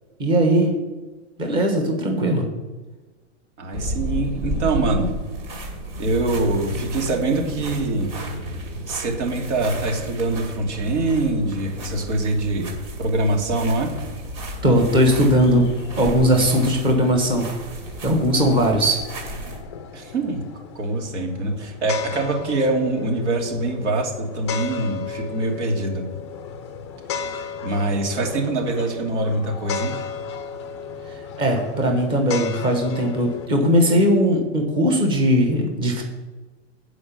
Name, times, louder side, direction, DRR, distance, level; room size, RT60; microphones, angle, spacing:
voice 1, 0.2-0.8 1.4-2.4 14.6-15.7 16.0-17.5 18.0-19.0 31.4-36.0, equal, 15° right, 2 dB, 1.2 m, -19 dB
voice 2, 3.6-5.1 6.0-8.1 8.9-12.7 13.0-13.9 19.9-20.4 20.7-26.0 27.6-29.9, right 2 dB, 70° right, 0 dB, 2.7 m, -24 dB
sound 1, 3.7-19.6, equal, 30° right, 2.1 m, -32 dB
sound 2, 14.5-33.5, left 6 dB, 25° left, 0.5 m, -35 dB
8.6 x 5.1 x 7.1 m, 1.2 s
supercardioid pair, 170°, 37 cm